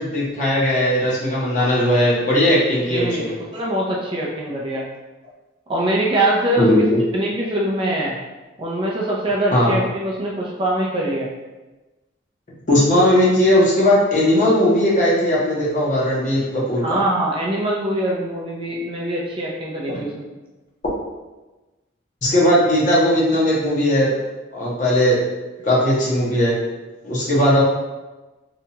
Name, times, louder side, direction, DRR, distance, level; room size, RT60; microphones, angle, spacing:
voice 1, 0.0-3.3 6.6-7.0 9.5-9.8 12.7-17.0 19.9-20.0 22.2-24.1 24.5-25.2 25.6-26.6 27.0-27.6, left 1 dB, 40° left, -5 dB, 0.7 m, -18 dB
voice 2, 2.9-4.8 5.7-6.9 7.1-8.2 8.6-11.3 16.8-20.1, right 1 dB, 25° right, -3 dB, 0.3 m, -23 dB
2.8 x 2.2 x 2.7 m, 1.1 s
head